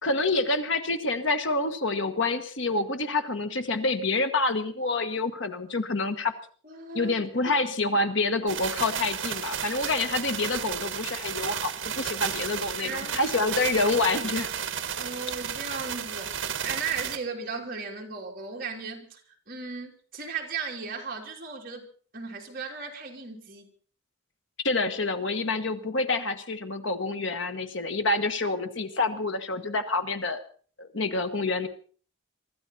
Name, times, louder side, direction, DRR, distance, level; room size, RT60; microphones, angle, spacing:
voice 1, 0.0-6.3 6.9-14.5 24.6-30.4 30.8-31.7, left 3 dB, 60° left, 7 dB, 1.3 m, -27 dB
voice 2, 6.6-7.2 7.4-7.6 7.9-8.0 12.8-13.3 14.9-16.3 16.6-19.2 19.5-21.9 22.1-23.7, right 5 dB, 45° right, -1 dB, 3.4 m, -36 dB
sound 1, 8.5-17.2, right 8 dB, 70° right, 1.5 m, -33 dB
24.0 x 13.5 x 4.2 m, 0.44 s
head